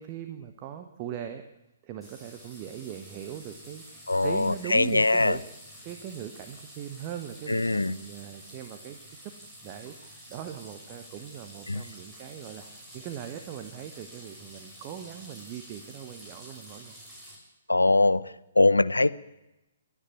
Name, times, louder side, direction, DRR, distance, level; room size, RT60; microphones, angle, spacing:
voice 1, 0.0-1.4 1.8-5.4 5.8-9.3 9.6-17.0, right 10 dB, 30° right, 7 dB, 1.4 m, -40 dB
sound 1, 2.0-17.4, equal, ahead, 6.6 m, -49 dB
voice 2, 4.1-5.4 7.5-8.0 11.7-11.8 17.7-18.2 18.5-19.1, left 2 dB, 80° left, 16 dB, 0.8 m, -22 dB
29.0 x 10.0 x 9.4 m, 0.97 s
figure-of-eight pair, 125°, 0 cm